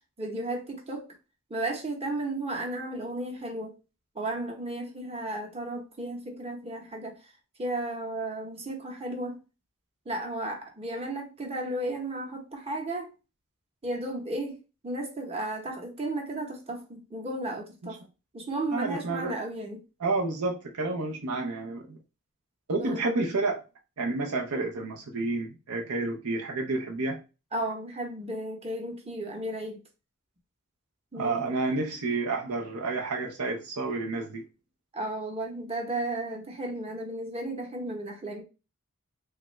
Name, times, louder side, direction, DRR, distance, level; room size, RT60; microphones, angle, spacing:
voice 1, 0.2-1.1 1.5-3.7 4.1-7.2 7.6-9.4 10.1-13.1 13.8-18.0 18.3-19.8 22.8-23.0 27.5-29.8 31.1-31.4 34.9-38.4, right 1 dB, 25° right, 0.8 m, -34 dB
voice 2, 18.7-19.4 20.0-22.0 22.7-23.6 24.0-27.2 31.1-34.4, right 3 dB, 90° right, 0.7 m, -30 dB
3.3 x 2.4 x 3.1 m
head